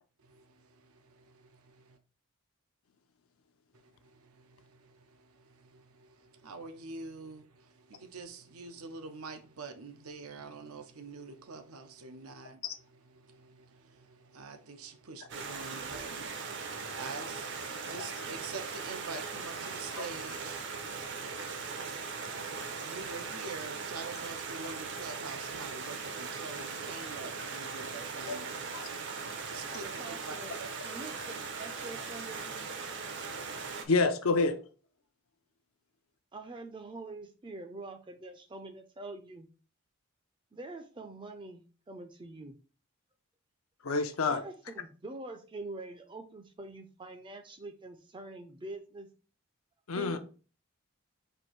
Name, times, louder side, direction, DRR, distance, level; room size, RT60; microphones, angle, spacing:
voice 1, 0.2-2.0 3.7-28.6 29.2-30.7, right 4 dB, 90° right, 0.7 m, -47 dB
Stream, 15.3-33.8, right 5 dB, 55° right, 0.7 m, -39 dB
voice 2, 29.8-30.5 30.8-32.7 36.3-39.5 40.5-42.6 44.3-49.1 49.9-50.2, right 2 dB, 20° right, 0.4 m, -45 dB
voice 3, 33.9-34.6 43.8-44.4 49.9-50.2, left 3 dB, 75° left, 0.6 m, -28 dB
4.4 x 2.6 x 4.4 m
head